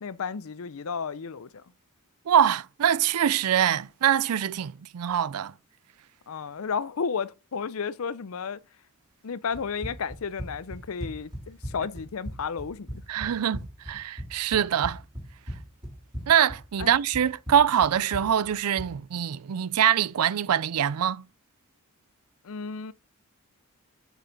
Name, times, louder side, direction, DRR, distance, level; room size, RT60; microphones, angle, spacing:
voice 1, 0.0-1.6 6.3-8.6 9.2-13.0 16.8-17.0 22.4-22.9, left 5 dB, 70° left, 0.5 m, -33 dB
voice 2, 2.3-5.5 13.1-15.0 16.3-21.2, right 9 dB, 85° right, 0.4 m, -24 dB
Run, 9.5-19.0, equal, 20° right, 2.7 m, -39 dB
8.0 x 6.4 x 3.9 m
head